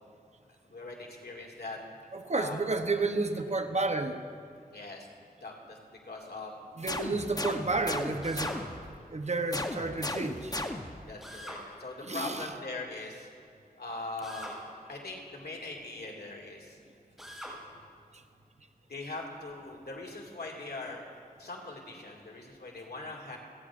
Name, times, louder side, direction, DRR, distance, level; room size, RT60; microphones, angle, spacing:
voice 1, 0.7-1.8 2.3-2.6 4.7-5.1 5.4-5.8 6.1-6.5 9.8-10.0 11.0-13.3 13.8-14.6 14.9-16.8 18.9-21.0 21.4-23.4, left 2 dB, 75° left, -2 dB, 2.3 m, -41 dB
voice 2, 2.1-4.2 6.8-8.5 9.1-10.6 12.0-12.5, right 3 dB, 45° right, 6 dB, 0.9 m, -31 dB
sound 1, 6.9-8.9 9.5-11.1, left 1 dB, 25° left, 0.9 m, -36 dB
Drill, 8.2-8.6 11.2-11.6 14.2-14.6 17.2-17.6, equal, ahead, 3.6 m, -43 dB
28.5 x 9.6 x 2.5 m, 2.4 s
cardioid pair, 45°, 17 cm